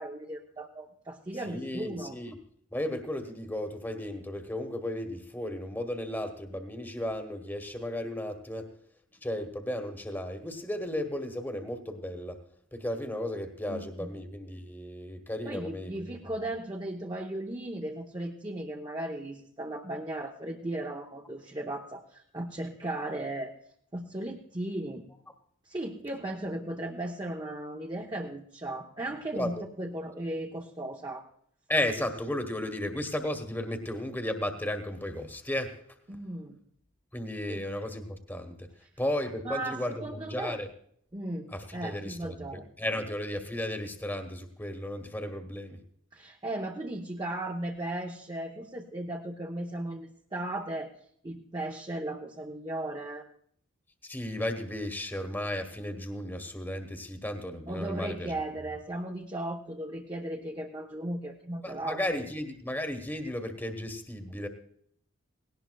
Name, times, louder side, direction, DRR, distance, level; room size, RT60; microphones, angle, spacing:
voice 1, 0.0-2.1 13.7-14.1 15.4-23.5 23.9-25.0 25.7-31.3 36.1-36.6 37.5-37.6 39.4-40.6 41.1-42.6 46.1-50.9 51.2-53.2 57.7-62.0, right 1 dB, 20° right, 0 dB, 0.7 m, -36 dB
voice 2, 1.4-2.4 2.7-8.7 9.2-12.4 12.7-16.2 29.3-29.6 31.7-35.8 37.1-38.7 39.0-40.7 41.5-45.8 54.0-58.3 61.6-64.5, left 1 dB, 10° left, 6 dB, 1.1 m, -34 dB
18.5 x 17.5 x 2.3 m, 0.66 s
head